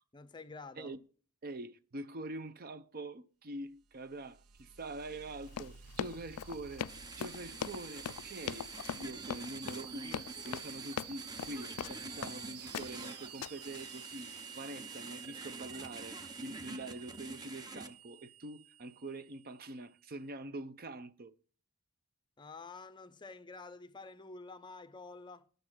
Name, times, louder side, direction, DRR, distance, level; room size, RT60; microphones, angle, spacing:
voice 1, 0.1-0.9 22.4-25.5, left 3 dB, 20° left, 0.6 m, -49 dB
voice 2, 1.4-6.9 7.2-21.4, right 2 dB, 40° right, 0.6 m, -45 dB
sound 1, 3.8-20.1, right 9 dB, 80° right, 0.7 m, -52 dB
Run, 5.5-12.4 12.7-13.1 13.4-13.8, left 8 dB, 90° left, 0.4 m, -40 dB
sound 2, 6.9-17.9, right 3 dB, 15° right, 0.9 m, -48 dB
12.0 x 6.6 x 6.1 m
head